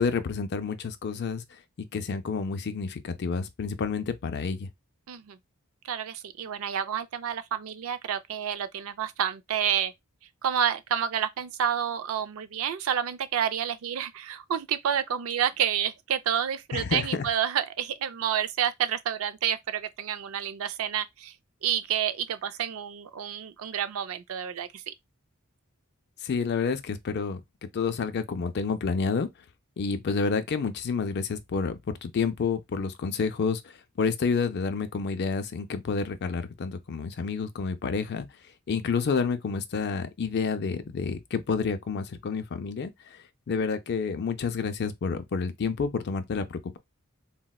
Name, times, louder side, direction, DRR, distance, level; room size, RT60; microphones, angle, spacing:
voice 1, 0.0-1.4 1.8-4.7 16.7-17.3 26.2-29.3 29.8-38.3 38.7-46.8, left 5 dB, 50° left, 0.4 m, -29 dB
voice 2, 5.1-5.4 5.9-9.9 10.4-21.3 21.6-24.9, right 9 dB, 65° right, 0.4 m, -29 dB
3.9 x 2.1 x 2.3 m
head